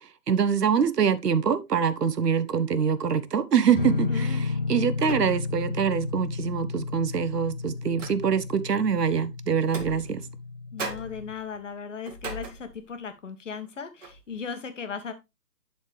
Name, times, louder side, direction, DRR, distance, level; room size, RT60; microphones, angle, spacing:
voice 1, 0.3-10.2, right 7 dB, 80° right, 1.1 m, -24 dB
sound 1, 3.6-3.9 5.0-5.7 6.1-6.2 7.1-8.6 9.6-10.5 10.8-13.1 13.5-13.7 14.0-14.4, right 3 dB, 50° right, 2.3 m, -40 dB
sound 2, 3.7-11.3, left 4 dB, 35° left, 0.7 m, -32 dB
voice 2, 4.1-4.4 10.7-15.1, left 6 dB, 50° left, 1.5 m, -37 dB
11.0 x 4.3 x 3.3 m
hypercardioid pair, 165°, 47 cm